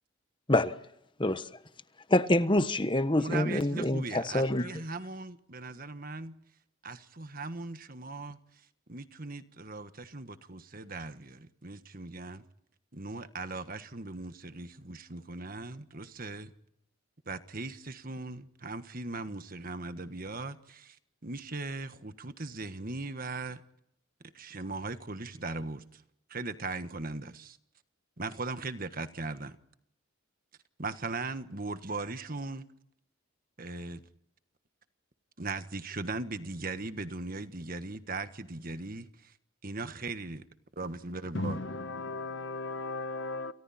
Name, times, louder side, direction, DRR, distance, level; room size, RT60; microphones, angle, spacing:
voice 1, 2.1-4.7, left 1 dB, 20° left, 1.2 m, -26 dB
voice 2, 3.2-6.4 6.8-8.4 8.9-12.4 12.9-16.5 17.2-21.0 21.2-23.6 24.3-26.0 26.3-27.6 28.2-29.6 30.8-32.7 33.6-34.0 35.4-39.3 39.6-40.5 40.8-41.6, right 3 dB, 40° right, 1.4 m, -39 dB
voice 3, 41.3-43.5, left 2 dB, 55° left, 1.3 m, -36 dB
30.0 x 29.0 x 4.3 m
head